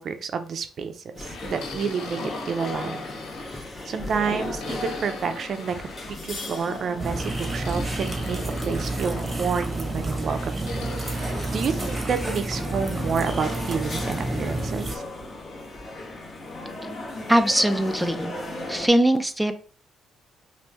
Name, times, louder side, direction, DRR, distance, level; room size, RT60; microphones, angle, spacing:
voice 1, 0.0-3.0 3.9-5.8 6.1-10.8 11.1-15.0, right 6 dB, 55° right, 8 dB, 0.5 m, -29 dB
sound 1, 1.1-18.9, left 2 dB, 35° left, 2.0 m, -36 dB
sound 2, 1.2-3.8 4.2-6.2 7.2-9.3 10.3-12.4, left 4 dB, 80° left, 0.9 m, -44 dB
sound 3, 7.0-15.0, right 2 dB, 20° right, 1.0 m, -30 dB
voice 2, 17.3-18.3 18.7-19.6, right 1 dB, ahead, 6 dB, 0.5 m, -21 dB
5.2 x 2.6 x 3.1 m, 0.39 s
cardioid pair, 90°, 0 cm